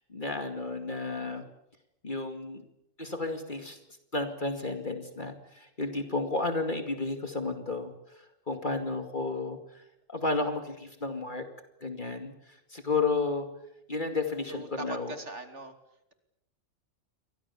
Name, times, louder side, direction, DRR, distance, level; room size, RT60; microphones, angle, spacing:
voice 1, 0.1-1.4 2.0-2.6 3.0-3.8 4.1-9.8 10.1-11.5 11.8-13.5 13.9-15.2, left 3 dB, 40° left, 6 dB, 2.6 m, -32 dB
voice 2, 14.5-15.7, right 3 dB, 70° right, 8 dB, 3.2 m, -40 dB
29.0 x 24.5 x 7.1 m, 0.82 s
omnidirectional pair, 1.3 m